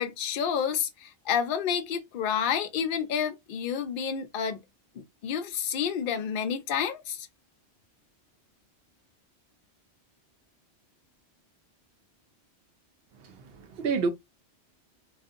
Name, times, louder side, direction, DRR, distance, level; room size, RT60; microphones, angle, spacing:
voice 1, 0.0-4.6 5.0-7.3, left 8 dB, 55° left, 0.6 m, -29 dB
voice 2, 13.2-14.1, right 5 dB, 65° right, 0.8 m, -30 dB
2.5 x 2.5 x 2.5 m
omnidirectional pair, 1.2 m